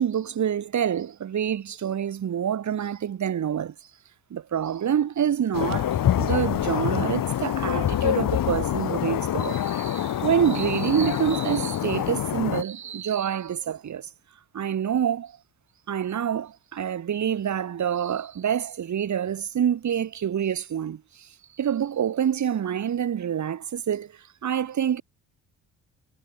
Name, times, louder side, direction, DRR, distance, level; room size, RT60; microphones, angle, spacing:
voice 1, 0.0-3.7 4.3-14.1 14.5-15.3 15.9-21.3 21.6-24.1 24.4-25.0, right 9 dB, 45° right, 1.6 m, -27 dB
sound 1, 5.5-12.6, left 11 dB, 55° left, 1.7 m, -26 dB
hypercardioid pair, 50°, 40 cm